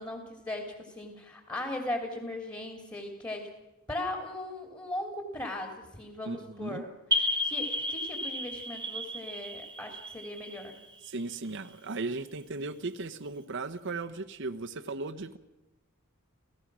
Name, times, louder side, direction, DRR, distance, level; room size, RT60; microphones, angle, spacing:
voice 1, 0.0-3.5 3.9-6.9 7.4-10.8, left 1 dB, 20° left, 4 dB, 2.9 m, -38 dB
voice 2, 6.2-6.8 11.0-15.4, right 3 dB, 60° right, 7 dB, 1.0 m, -36 dB
sound 1, 7.1-11.5, left 1 dB, 20° right, 1.6 m, -33 dB
29.0 x 16.0 x 6.2 m, 0.96 s
head